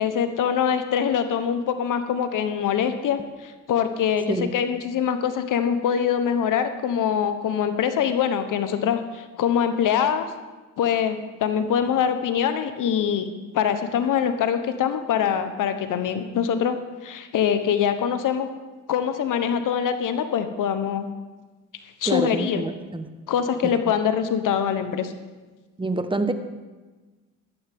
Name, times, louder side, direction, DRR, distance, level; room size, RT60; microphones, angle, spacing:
voice 1, 0.0-10.3 10.8-13.3 13.5-16.8 17.0-18.5 18.9-21.1 22.0-22.6 23.3-25.1, left 8 dB, 70° left, 9 dB, 1.2 m, -24 dB
voice 2, 22.1-23.1 25.8-26.3, right 2 dB, 15° right, 9 dB, 1.2 m, -26 dB
14.5 x 12.5 x 3.7 m, 1.3 s
supercardioid pair, 65°, 32 cm